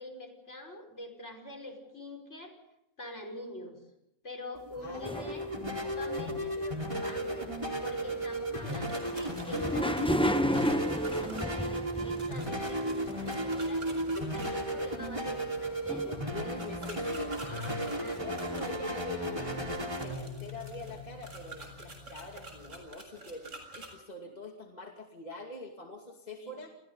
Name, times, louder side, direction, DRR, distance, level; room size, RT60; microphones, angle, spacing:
voice 1, 0.0-2.6 3.0-3.8 4.2-5.4 5.8-16.9 17.9-18.3 26.4-26.5, left 2 dB, 50° left, 2 dB, 5.6 m, -45 dB
sound 1, 4.5-22.8, right 1 dB, 20° right, 4.4 m, -35 dB
voice 2, 4.7-5.5 6.0-6.8 15.9-26.7, left 2 dB, 30° left, 1 dB, 2.6 m, -45 dB
sound 2, 5.0-7.7 8.0-17.8 18.2-18.3 18.5-18.6, equal, 5° left, 0.7 m, -34 dB
sound 3, 8.7-14.5 16.6-18.7 19.5-23.9, right 3 dB, 60° right, 7.8 m, -48 dB
29.5 x 29.5 x 4.0 m, 0.79 s
omnidirectional pair, 1.5 m